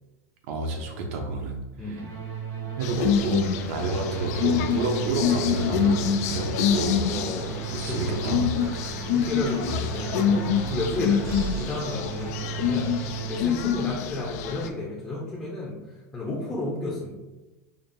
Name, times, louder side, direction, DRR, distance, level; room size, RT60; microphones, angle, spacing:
voice 1, 0.5-1.6 2.8-7.1 7.7-8.5 9.6-9.8, right 2 dB, 60° right, 3 dB, 0.7 m, -29 dB
voice 2, 1.8-2.2 3.0-3.1 3.5-3.9 7.1-17.1, left 1 dB, 10° left, -5 dB, 0.6 m, -33 dB
sound 1, 1.9-13.5, right 7 dB, 75° right, 1.4 m, -35 dB
sound 2, 2.8-14.7, left 8 dB, 70° left, 0.4 m, -26 dB
sound 3, 4.3-12.7, right 1 dB, 25° right, 0.6 m, -42 dB
5.1 x 2.5 x 2.6 m, 1.1 s
supercardioid pair, 160°, 9 cm